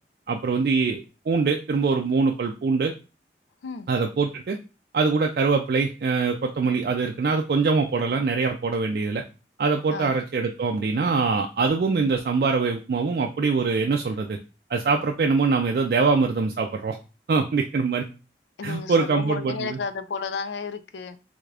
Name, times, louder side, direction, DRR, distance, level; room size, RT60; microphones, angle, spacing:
voice 1, 0.3-1.0 1.3-2.9 3.9-4.6 4.9-9.2 9.6-14.4 14.7-17.0 17.3-18.1 18.6-19.8, right 4 dB, 55° right, 0.3 m, -23 dB
voice 2, 18.6-21.2, left 5 dB, 85° left, 0.4 m, -32 dB
3.5 x 2.4 x 3.3 m
head